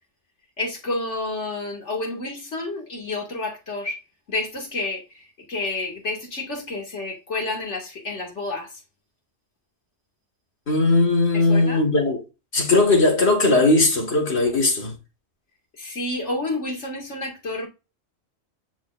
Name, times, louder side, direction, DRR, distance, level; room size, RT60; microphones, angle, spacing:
voice 1, 0.6-4.0 4.3-8.8 11.3-11.8 15.8-17.7, left 2 dB, 85° left, 2.6 m, -30 dB
voice 2, 10.7-12.2 12.5-14.9, left 2 dB, 65° left, 2.3 m, -18 dB
9.9 x 4.4 x 2.6 m
omnidirectional pair, 1.2 m